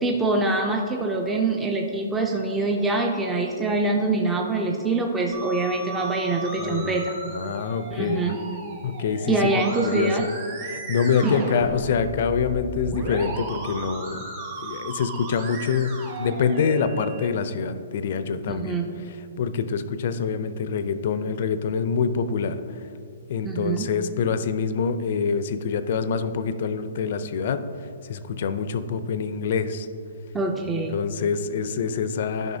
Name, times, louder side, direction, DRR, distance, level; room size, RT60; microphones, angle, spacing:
voice 1, 0.0-7.1 7.9-8.4 9.3-10.2 11.2-11.5 18.5-18.9 23.4-23.9 30.3-31.1, right 3 dB, 10° right, 1 dB, 0.4 m, -24 dB
Musical instrument, 5.3-17.3, right 2 dB, 35° right, 1.6 m, -36 dB
voice 2, 6.6-7.0 7.3-8.4 8.8-10.4 10.7-14.2 14.6-15.9 16.2-22.8 23.3-27.6 28.0-29.9 30.9-32.6, left 6 dB, 55° left, 11 dB, 0.4 m, -26 dB
10.5 x 5.4 x 2.7 m, 2.5 s
hypercardioid pair, 150°, 0 cm